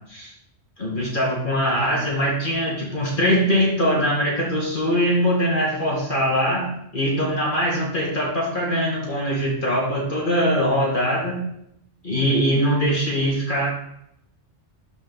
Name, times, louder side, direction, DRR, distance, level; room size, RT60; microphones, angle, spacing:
voice 1, 0.8-11.4 12.0-13.7, equal, 45° left, -2 dB, 1.9 m, -22 dB
12.5 x 5.1 x 3.9 m, 0.77 s
omnidirectional pair, 1.2 m